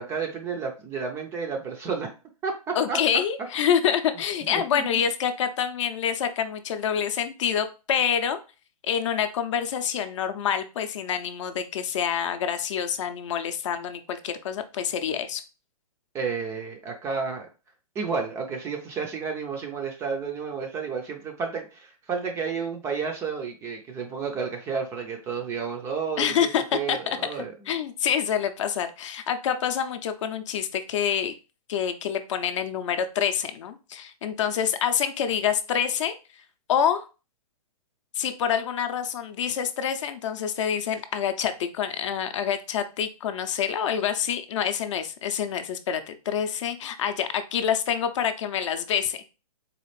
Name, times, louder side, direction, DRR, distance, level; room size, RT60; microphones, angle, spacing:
voice 1, 0.0-2.1 2.4-3.0 4.5-4.9 16.1-17.5 18.0-27.5, right 5 dB, 15° right, 3 dB, 0.4 m, -31 dB
voice 2, 2.7-8.4 8.8-15.4 26.2-31.3 31.7-36.1 36.7-37.1 38.2-49.2, left 8 dB, 50° left, 9 dB, 0.5 m, -27 dB
4.1 x 2.4 x 3.1 m, 0.32 s
hypercardioid pair, 140°, 20 cm